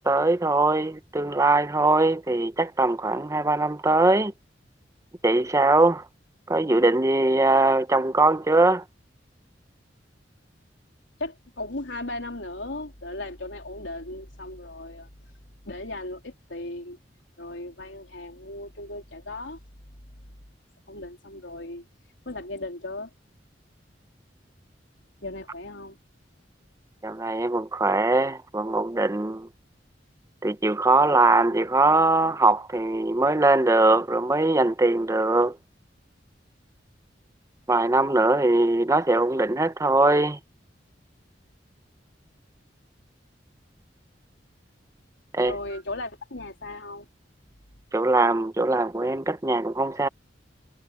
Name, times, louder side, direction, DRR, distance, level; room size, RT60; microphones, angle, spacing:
voice 1, 0.0-4.3 5.2-6.0 6.5-8.8 27.0-29.5 30.4-35.6 37.7-40.4 45.3-45.6 47.9-50.1, right 2 dB, 15° right, 0.7 m, -21 dB
voice 2, 11.2-15.1 15.7-17.0 17.4-19.6 20.9-21.8 22.3-23.1 25.2-26.0 45.4-47.1, left 2 dB, 90° left, 3.6 m, -36 dB
head